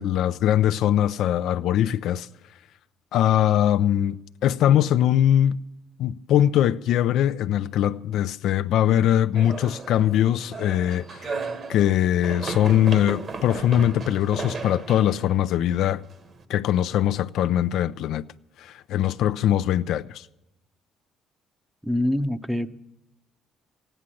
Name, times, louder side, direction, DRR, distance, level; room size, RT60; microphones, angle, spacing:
voice 1, 0.0-2.3 3.1-5.6 6.0-11.4 11.7-16.0 16.5-18.2 18.6-20.3, left 11 dB, 75° left, 0.4 m, -22 dB
sound 1, 9.4-16.4, right 4 dB, 45° right, 1.3 m, -35 dB
voice 2, 21.8-22.7, left 1 dB, 5° right, 0.7 m, -25 dB
15.5 x 10.0 x 7.6 m
cardioid pair, 105°, 0 cm